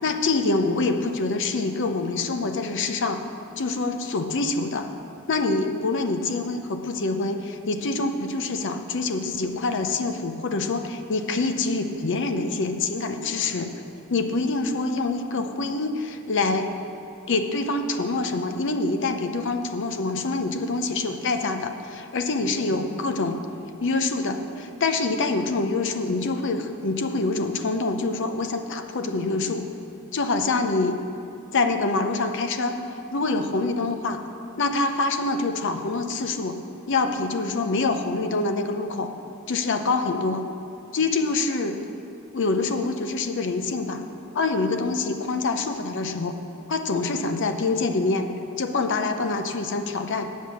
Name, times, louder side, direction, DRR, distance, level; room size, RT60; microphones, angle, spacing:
voice 1, 0.0-3.2 3.6-4.9 5.3-13.7 14.1-16.7 17.3-23.4 23.8-29.7 30.1-31.0 31.5-32.8 33.1-34.2 34.6-36.6 36.9-39.1 39.5-40.4 40.9-41.8 42.3-44.0 44.3-46.4 46.7-48.3 48.6-50.3, left 3 dB, 55° left, 7 dB, 0.6 m, -25 dB
8.3 x 7.3 x 6.2 m, 2.8 s
head